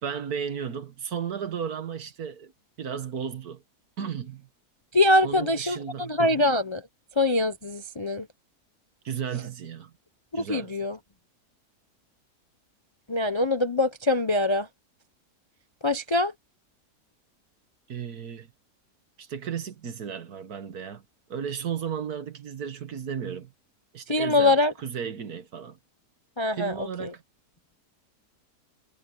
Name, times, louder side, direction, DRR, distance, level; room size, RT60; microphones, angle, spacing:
voice 1, 0.0-2.5 2.8-3.6 4.0-4.5 5.2-6.4 9.1-9.9 10.4-10.8 17.9-18.5 19.2-21.0 21.3-23.5 23.9-24.6 24.8-25.8 26.6-27.2, right 7 dB, 65° right, 1.8 m, -34 dB
voice 2, 4.9-6.8 7.2-8.3 10.3-11.0 13.1-14.7 15.8-16.3 24.1-24.7 26.4-27.1, left 2 dB, 30° left, 0.5 m, -23 dB
omnidirectional pair, 1.7 m